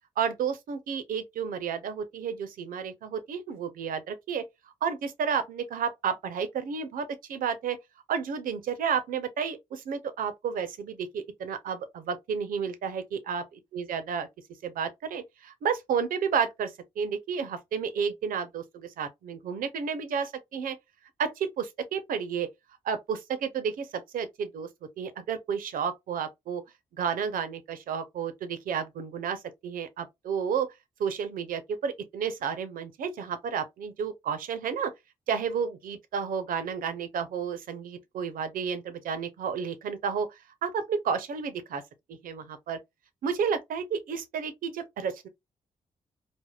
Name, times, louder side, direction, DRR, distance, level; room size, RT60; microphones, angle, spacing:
voice 1, 0.2-4.4 4.8-7.8 8.1-14.3 14.6-20.8 21.2-22.5 22.8-24.7 25.0-26.6 27.0-30.7 31.0-34.9 35.3-40.3 40.6-41.8 42.1-42.8 43.2-45.3, right 6 dB, 70° right, 0.6 m, -31 dB
3.4 x 2.1 x 2.3 m
hypercardioid pair, 40°, 15 cm